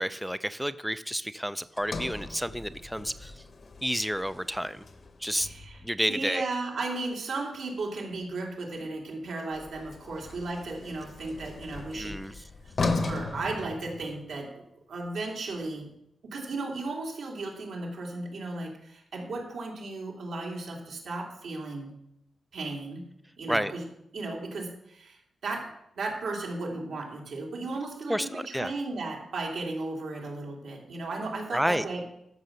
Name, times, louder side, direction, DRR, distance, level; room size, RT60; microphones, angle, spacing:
voice 1, 0.0-3.3 3.8-4.8 5.2-5.5 5.8-6.4 11.9-12.3 23.5-23.7 28.1-28.7 31.5-31.9, equal, ahead, 13 dB, 0.3 m, -30 dB
Sliding door, 1.8-6.0 9.5-14.4, left 3 dB, 35° left, 0.8 m, -37 dB
voice 2, 5.3-5.8 6.1-14.6 14.9-15.9 16.2-22.0 22.5-23.1 23.4-23.9 24.1-32.0, right 3 dB, 75° right, -1 dB, 3.0 m, -35 dB
13.0 x 5.9 x 6.6 m, 0.77 s
wide cardioid pair, 180°, 0 cm